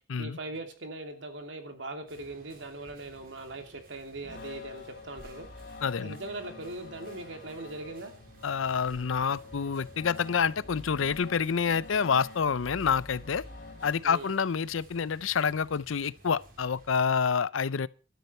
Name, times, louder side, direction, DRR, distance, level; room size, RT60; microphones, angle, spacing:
voice 1, 0.2-5.5 6.0-8.1 14.0-14.3, right 2 dB, 70° right, 2.8 m, -40 dB
sound 1, 2.1-17.0, right 1 dB, 45° right, 3.1 m, -55 dB
sound 2, 2.8-3.2 4.0-4.1 5.1-5.8 6.4-6.6 8.7-9.2 9.9-10.0 11.0-11.5 12.0-12.1 13.0-13.6, equal, 85° right, 7.8 m, -56 dB
sound 3, 4.2-14.5, left 3 dB, 45° left, 4.1 m, -47 dB
voice 2, 5.8-6.2 8.4-13.4 13.8-17.9, left 6 dB, 85° left, 0.6 m, -28 dB
13.5 x 12.5 x 4.4 m
head